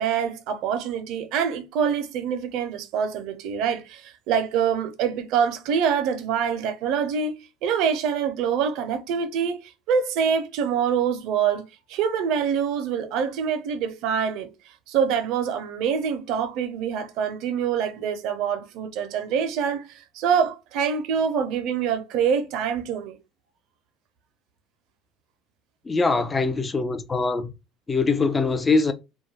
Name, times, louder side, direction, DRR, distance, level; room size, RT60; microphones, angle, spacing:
voice 1, 0.0-11.6 11.9-14.5 14.9-23.2, right 7 dB, 65° right, 0.5 m, -25 dB
voice 2, 25.9-27.5 27.9-28.9, left 3 dB, 25° left, 0.5 m, -22 dB
2.3 x 2.1 x 3.2 m
supercardioid pair, 85°, 0 cm